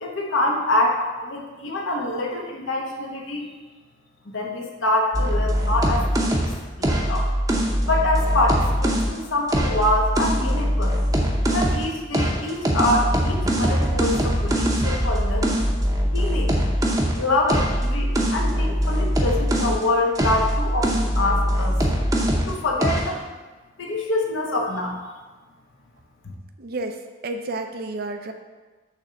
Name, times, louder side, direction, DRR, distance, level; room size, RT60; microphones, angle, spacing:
voice 1, 0.0-3.5 4.2-6.5 6.8-7.3 7.9-11.0 11.5-15.6 16.1-16.6 17.2-21.8 22.5-23.2 23.8-25.0 26.2-26.3, left 2 dB, 70° left, -1 dB, 1.0 m, -25 dB
sound 1, 5.1-9.1 9.5-11.9 12.1-19.8 20.1-22.5 22.8-23.1, equal, 20° right, 0.7 m, -22 dB
voice 2, 26.6-28.3, right 2 dB, 50° right, 5 dB, 0.5 m, -31 dB
6.7 x 3.4 x 5.9 m, 1.3 s
head